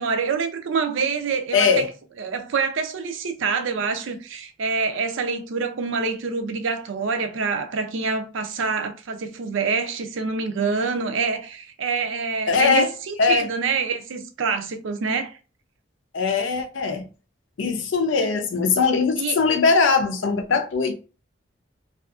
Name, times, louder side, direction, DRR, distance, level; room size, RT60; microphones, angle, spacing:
voice 1, 0.0-1.8 2.2-15.4 19.2-19.4, right 5 dB, 75° right, 0.4 m, -26 dB
voice 2, 1.5-1.9 12.5-12.9 13.2-13.4 16.1-17.1 17.6-20.9, left 4 dB, 70° left, 0.5 m, -20 dB
2.6 x 2.4 x 2.4 m
head